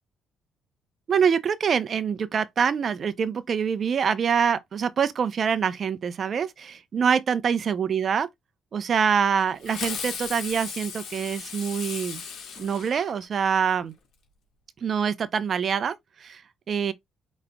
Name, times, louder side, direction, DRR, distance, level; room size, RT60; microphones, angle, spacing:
voice 1, 1.1-8.3 8.7-12.2 12.6-13.9 14.8-16.4 16.7-16.9, right 7 dB, 50° right, 0.7 m, -25 dB
Fireworks, 9.6-13.5, left 6 dB, 75° left, 1.8 m, -36 dB
5.1 x 3.2 x 2.3 m
cardioid pair, 90°, 0 cm